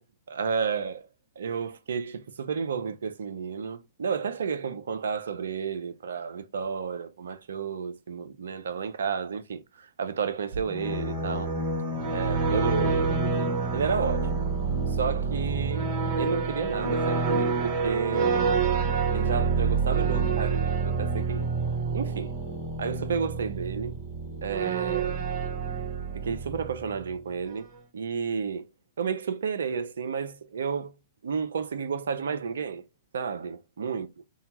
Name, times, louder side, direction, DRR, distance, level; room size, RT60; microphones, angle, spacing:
voice 1, 0.3-1.1 1.4-11.5 12.1-14.4 14.9-15.9 16.2-18.6 19.1-21.5 21.9-22.3 22.8-24.0 24.4-25.2 26.2-27.7 27.9-28.7 29.0-30.9 31.2-32.8 33.1-34.1, right 6 dB, 70° right, 0.3 m, -31 dB
sound 1, 10.5-27.2, right 4 dB, 45° right, 1.0 m, -28 dB
2.7 x 2.2 x 2.8 m
figure-of-eight pair, 110°, 0 cm